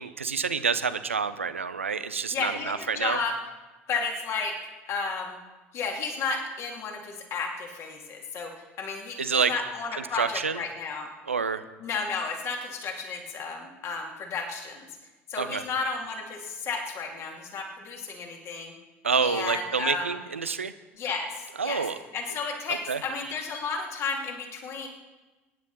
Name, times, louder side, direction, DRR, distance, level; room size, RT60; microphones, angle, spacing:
voice 1, 0.0-3.2 9.2-9.5 9.9-10.6 11.3-11.6 15.4-15.6 19.0-20.7 21.6-22.0 22.7-23.0, right 5 dB, 80° right, 13 dB, 0.6 m, -28 dB
voice 2, 2.3-3.3 3.9-4.6 4.9-5.4 5.7-8.5 8.8-11.1 11.8-14.8 15.3-18.7 19.2-20.1 21.0-21.8 22.1-24.9, left 4 dB, 40° left, 2 dB, 2.6 m, -32 dB
23.0 x 10.5 x 4.1 m, 1.2 s
figure-of-eight pair, 70°, 7 cm